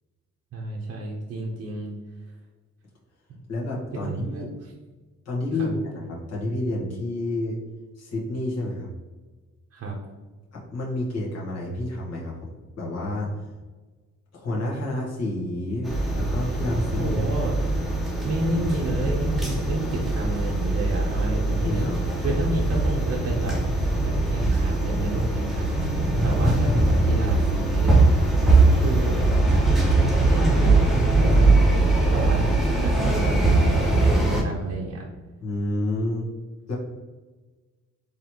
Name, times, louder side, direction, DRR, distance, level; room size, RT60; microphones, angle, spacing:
voice 1, 0.5-1.9 4.1-4.4 5.6-5.7 9.7-9.9 17.0-17.5 18.2-21.9 22.2-28.3 28.7-29.1 29.5-32.5 32.8-33.6 33.9-35.0, right 2 dB, 50° right, -4 dB, 0.8 m, -30 dB
voice 2, 3.5-4.5 5.2-7.6 8.0-8.9 10.5-13.4 14.3-17.2 21.5-22.2 35.4-36.3 36.7-36.8, left 1 dB, 55° left, -4 dB, 1.5 m, -29 dB
sound 1, 15.8-34.4, right 2 dB, ahead, 0.8 m, -21 dB
4.0 x 3.1 x 3.0 m, 1.3 s
cardioid pair, 90°, 30 cm